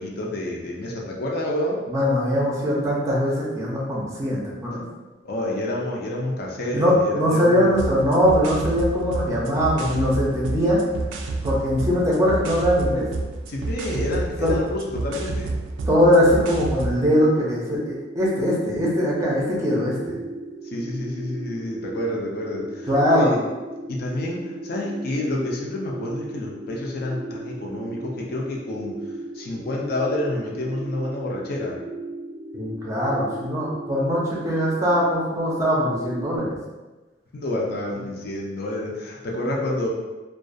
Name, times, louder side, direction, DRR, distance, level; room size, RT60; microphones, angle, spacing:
voice 1, 0.0-1.8 5.2-7.7 13.5-15.5 20.6-23.4 23.9-28.9 29.4-31.7 37.3-39.9, left 1 dB, 55° left, -2 dB, 0.4 m, -28 dB
voice 2, 1.9-4.8 6.7-10.8 11.4-13.0 14.4-14.6 15.9-20.2 22.9-23.4 32.5-36.6, equal, 15° right, -5 dB, 0.5 m, -21 dB
sound 1, 7.7-17.0, right 3 dB, 85° right, 0.3 m, -30 dB
sound 2, 17.0-36.4, right 2 dB, 85° left, 0.9 m, -36 dB
2.3 x 2.2 x 2.5 m, 1.2 s
head